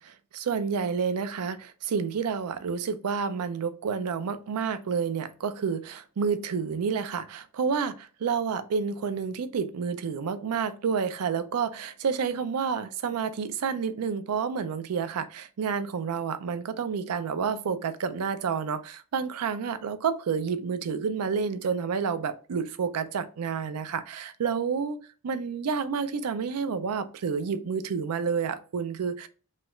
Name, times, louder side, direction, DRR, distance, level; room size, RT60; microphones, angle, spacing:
voice 1, 0.0-25.0 25.2-29.3, right 6 dB, 80° right, 0.4 m, -29 dB
3.1 x 2.3 x 3.0 m
head